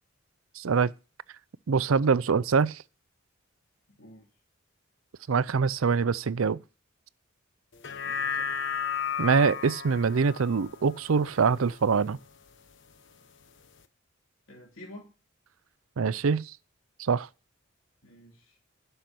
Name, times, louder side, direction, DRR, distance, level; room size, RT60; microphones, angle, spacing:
voice 1, 0.6-0.9 1.7-2.8 5.3-6.6 9.2-12.2 16.0-16.5 17.0-17.3, right 5 dB, 85° right, 0.5 m, -24 dB
sound 1, 7.7-12.3 12.7-12.8, left 7 dB, 60° left, 1.1 m, -34 dB
voice 2, 7.9-8.6 14.5-15.1 18.0-18.6, left 1 dB, 75° left, 3.1 m, -49 dB
11.5 x 6.8 x 6.1 m
head